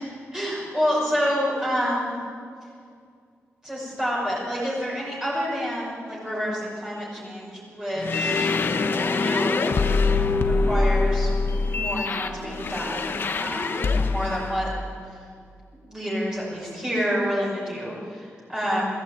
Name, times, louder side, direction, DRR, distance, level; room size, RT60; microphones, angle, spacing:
voice 1, 0.3-2.1 3.6-8.6 8.9-11.3 11.6-14.7 15.9-18.8, equal, 15° right, -6 dB, 5.9 m, -28 dB
sound 1, 8.0-14.4, left 3 dB, 45° left, 1.1 m, -24 dB
22.5 x 15.0 x 9.2 m, 2.3 s
wide cardioid pair, 170°, 5 cm